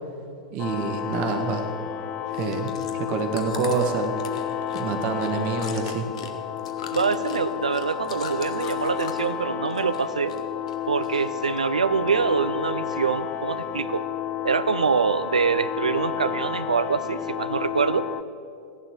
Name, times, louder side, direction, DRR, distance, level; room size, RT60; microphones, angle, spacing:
voice 1, 0.5-1.7 2.3-4.1 4.7-6.1, right 4 dB, 40° right, 6 dB, 1.7 m, -27 dB
sound 1, 0.6-18.2, left 10 dB, 35° left, 0.5 m, -31 dB
Chewing mastication, 2.3-9.4 9.7-10.4 10.7-11.6 12.1-12.2, left 6 dB, 60° left, 1.4 m, -41 dB
voice 2, 6.9-10.4 10.9-14.1 14.4-18.1, right 5 dB, 75° right, 14 dB, 0.6 m, -25 dB
16.0 x 11.0 x 6.5 m, 2.4 s
figure-of-eight pair, 95°, 4 cm